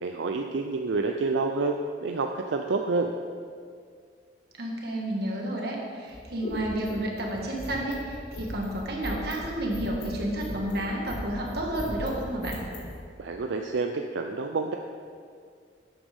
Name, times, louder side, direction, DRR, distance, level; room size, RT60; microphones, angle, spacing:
voice 1, 0.0-3.1 13.2-14.8, right 3 dB, 85° right, 4 dB, 0.5 m, -28 dB
voice 2, 4.6-12.6, right 1 dB, 60° right, -1 dB, 1.8 m, -31 dB
sound 1, 6.1-12.9, left 1 dB, 85° left, 2.1 m, -38 dB
12.5 x 8.5 x 3.6 m, 2.1 s
head